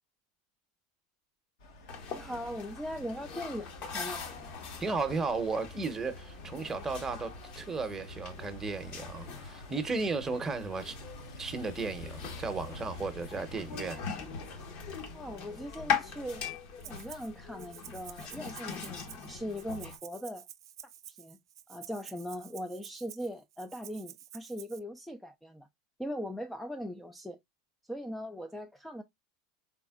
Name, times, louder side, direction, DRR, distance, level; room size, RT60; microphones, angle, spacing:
sound 1, 1.6-16.4, left 1 dB, 75° left, 1.3 m, -49 dB
sound 2, 1.9-20.0, left 6 dB, 55° left, 1.1 m, -41 dB
voice 1, 2.1-4.2 15.1-16.4 16.8-20.4 21.1-21.4 21.7-25.7 26.0-27.4 27.9-29.0, equal, 5° left, 0.4 m, -40 dB
voice 2, 4.8-11.0 11.4-14.0, right 4 dB, 20° right, 0.8 m, -34 dB
Rattle (instrument), 16.8-17.3 17.6-24.8, right 11 dB, 90° right, 0.4 m, -50 dB
3.9 x 3.5 x 2.3 m
hypercardioid pair, 105°, 2 cm